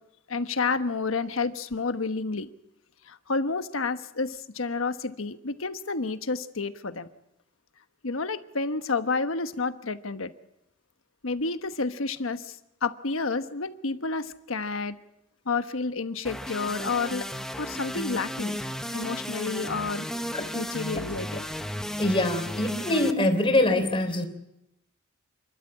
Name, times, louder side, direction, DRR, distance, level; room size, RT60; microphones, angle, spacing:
voice 1, 0.3-2.5 3.1-7.1 8.0-10.3 11.2-12.6 12.8-15.0 15.4-17.2 17.6-18.6 18.9-20.1 20.5-21.4, left 4 dB, 90° left, 9 dB, 1.2 m, -30 dB
sound 1, 16.2-23.1, equal, 5° left, 1.0 m, -34 dB
voice 2, 22.0-24.3, left 1 dB, 25° left, 6 dB, 3.4 m, -24 dB
29.0 x 12.5 x 8.9 m, 0.88 s
head